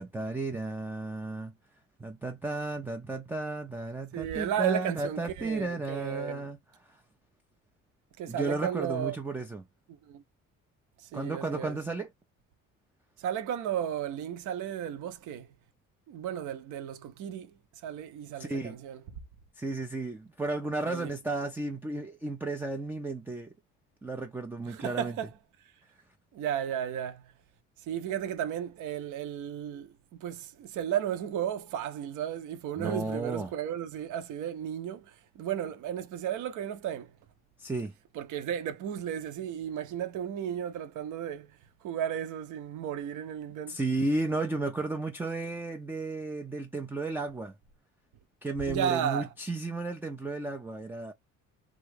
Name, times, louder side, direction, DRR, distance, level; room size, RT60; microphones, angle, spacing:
voice 1, 0.0-1.5 2.0-6.6 6.9-7.0 8.3-9.7 11.1-12.1 18.4-18.8 19.6-23.5 24.0-25.1 32.8-33.5 37.6-37.9 43.7-47.5 48.4-51.1, right 2 dB, 5° right, 0.3 m, -33 dB
voice 2, 4.1-6.5 8.2-9.2 9.9-10.2 11.0-11.8 13.2-15.5 16.1-17.5 17.8-19.0 20.9-21.1 24.7-25.3 26.3-27.3 27.8-29.9 30.2-37.1 38.1-41.5 41.8-43.8 48.7-49.3, right 9 dB, 65° right, 0.7 m, -34 dB
3.0 x 2.4 x 3.3 m
cardioid pair, 125°, 33 cm